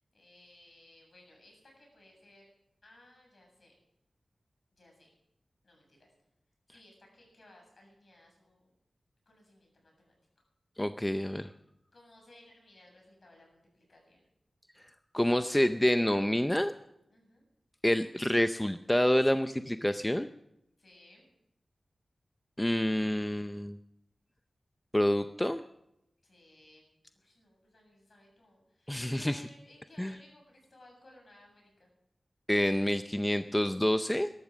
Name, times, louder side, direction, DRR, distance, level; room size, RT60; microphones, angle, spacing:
voice 1, 0.1-2.5 2.8-3.7 4.8-5.1 5.6-6.1 6.7-8.7 9.3-10.4 11.9-14.2 17.1-17.5 20.8-21.3 26.2-26.9 27.2-31.9, left 1 dB, 50° left, 1 dB, 7.5 m, -59 dB
voice 2, 10.8-11.5 15.1-16.7 17.8-20.3 22.6-23.8 24.9-25.6 28.9-29.4 30.0-30.1 32.5-34.3, left 1 dB, 10° left, 10 dB, 0.5 m, -27 dB
13.5 x 12.5 x 7.5 m, 0.83 s
wide cardioid pair, 80°, 0 cm